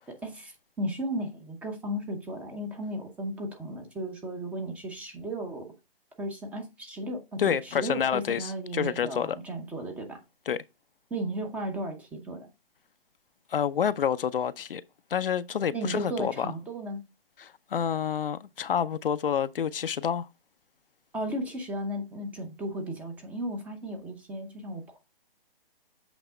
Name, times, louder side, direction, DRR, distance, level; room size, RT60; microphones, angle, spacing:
voice 1, 0.1-5.7 6.2-10.2 11.1-12.5 15.7-17.0 21.1-25.0, right 1 dB, 5° right, 0.7 m, -35 dB
voice 2, 7.4-9.4 10.5-10.6 13.5-14.8 15.1-16.5 17.4-20.3, left 8 dB, 65° left, 0.6 m, -28 dB
8.0 x 3.4 x 4.9 m
hypercardioid pair, 150°, 30 cm